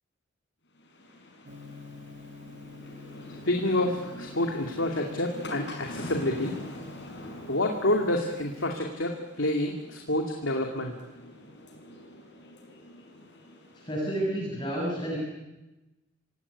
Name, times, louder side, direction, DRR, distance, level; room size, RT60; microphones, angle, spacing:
sound 1, 0.8-14.3, left 1 dB, 60° left, 6.3 m, -45 dB
Gong, 1.5-8.8, left 4 dB, 65° right, 2.1 m, -49 dB
voice 1, 3.4-6.6 7.5-10.9, left 1 dB, 80° left, 2 dB, 2.6 m, -28 dB
voice 2, 13.8-15.2, right 1 dB, 25° left, -4 dB, 7.2 m, -30 dB
26.5 x 17.5 x 10.0 m, 1.0 s
head